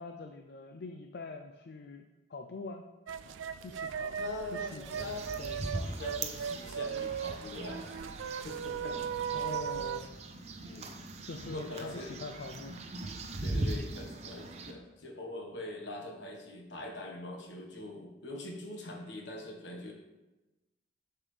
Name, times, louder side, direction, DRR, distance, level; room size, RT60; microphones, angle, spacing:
voice 1, 0.0-2.8 3.6-4.2 4.5-5.1 5.4-5.6 6.6-6.7 9.3-10.2 11.2-12.9, left 3 dB, 55° left, 5 dB, 0.4 m, -44 dB
sound 1, 3.1-10.1, right 7 dB, 90° right, 0.4 m, -37 dB
voice 2, 4.2-5.2 5.7-8.0 8.4-9.0 10.6-11.0 11.5-12.1 13.4-19.9, left 1 dB, 75° left, 1 dB, 1.4 m, -42 dB
sound 2, 4.8-14.7, right 2 dB, 35° right, 0.6 m, -40 dB
7.3 x 6.7 x 3.3 m, 1.1 s
head